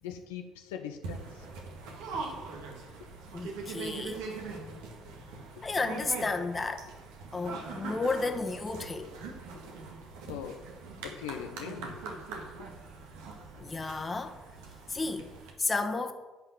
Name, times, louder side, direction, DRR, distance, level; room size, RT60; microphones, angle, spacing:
voice 1, 0.0-1.5 3.0-3.1 5.6-5.7 10.3-10.6 11.0-12.0 12.6-12.7, left 8 dB, 80° left, 0.8 m, -41 dB
sound 1, 1.0-15.5, right 4 dB, 75° right, 1.9 m, -42 dB
voice 2, 3.3-4.8 5.6-6.9 7.3-9.1 13.6-14.4 14.9-16.1, left 3 dB, 30° left, 1.4 m, -33 dB
10.5 x 5.8 x 8.0 m
hypercardioid pair, 50°, 0 cm